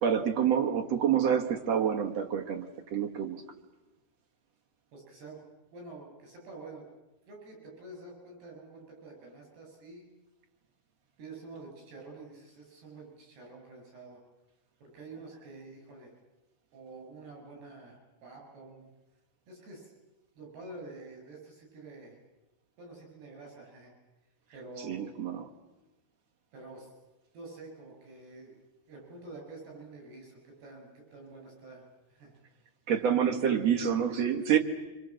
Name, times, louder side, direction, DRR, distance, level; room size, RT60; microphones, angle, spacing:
voice 1, 0.0-3.4 24.8-25.5 32.9-34.6, right 8 dB, 50° right, 2 dB, 2.1 m, -27 dB
voice 2, 4.9-5.4 5.7-6.9 7.3-10.1 11.2-14.2 14.8-16.1 16.7-18.9 19.5-19.9 20.4-22.2 22.8-23.9 24.5-25.0 26.5-26.9 27.3-28.6 28.9-32.4, right 3 dB, 75° right, 1 dB, 10.0 m, -48 dB
27.0 x 25.5 x 7.6 m, 1.1 s
omnidirectional pair, 4.7 m